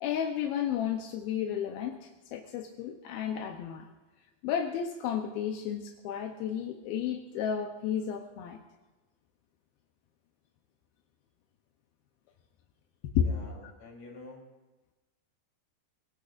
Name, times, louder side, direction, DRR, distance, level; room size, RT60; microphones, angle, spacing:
voice 1, 0.0-3.9 4.4-8.6 13.1-13.3, left 8 dB, 75° left, 2 dB, 2.3 m, -32 dB
voice 2, 13.1-14.5, left 3 dB, 40° left, -2 dB, 4.4 m, -48 dB
26.0 x 18.5 x 2.6 m, 1.1 s
omnidirectional pair, 5.3 m